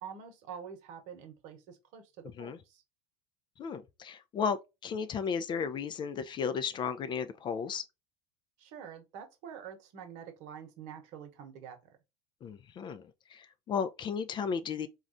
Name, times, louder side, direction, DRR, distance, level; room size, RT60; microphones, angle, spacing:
voice 1, 0.0-2.8 8.6-12.0, right 7 dB, 55° right, 1.0 m, -47 dB
voice 2, 3.6-7.8 12.4-13.0 13.3-14.9, left 6 dB, 30° left, 0.4 m, -34 dB
4.0 x 2.4 x 2.5 m
hypercardioid pair, 75°, 15 cm